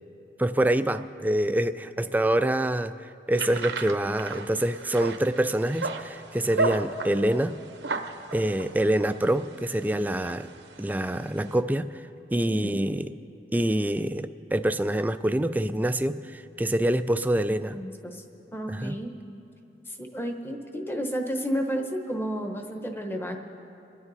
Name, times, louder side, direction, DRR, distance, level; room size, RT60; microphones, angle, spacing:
voice 1, 0.4-7.5 8.3-10.5 10.8-12.0 12.3-13.1 13.5-17.8 18.7-19.0, right 1 dB, 10° right, 11 dB, 0.3 m, -26 dB
sound 1, 3.3-11.6, right 3 dB, 85° right, 0.9 m, -35 dB
voice 2, 12.5-12.8 17.7-18.2 18.5-19.1 19.9-23.4, equal, 15° left, 4 dB, 1.0 m, -31 dB
26.0 x 9.6 x 4.2 m, 2.8 s
head